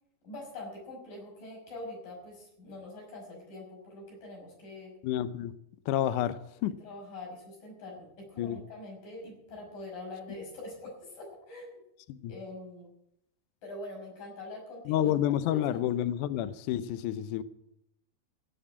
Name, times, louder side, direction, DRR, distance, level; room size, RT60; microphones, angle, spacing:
voice 1, 0.2-4.9 6.8-11.8 12.3-12.9 13.6-15.1 15.5-15.8, left 2 dB, 60° left, 0 dB, 7.4 m, -44 dB
voice 2, 5.0-5.5 5.9-6.8 8.4-8.6 12.1-12.3 14.9-17.4, left 11 dB, 85° left, 13 dB, 1.8 m, -29 dB
17.0 x 7.7 x 8.7 m, 0.78 s
omnidirectional pair, 4.5 m